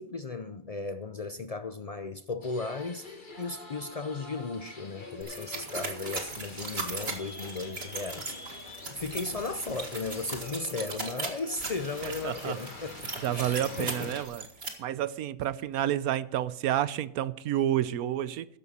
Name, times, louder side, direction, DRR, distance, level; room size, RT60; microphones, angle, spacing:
voice 1, 0.0-14.1, left 3 dB, 60° left, 0.3 m, -36 dB
sound 1, 2.4-14.2, left 2 dB, 35° left, 2.1 m, -45 dB
sound 2, 5.2-14.7, right 3 dB, 45° right, 2.1 m, -38 dB
voice 2, 12.0-12.6 13.2-14.5 14.8-18.5, right 11 dB, 90° right, 1.1 m, -30 dB
14.0 x 11.0 x 4.2 m
omnidirectional pair, 1.5 m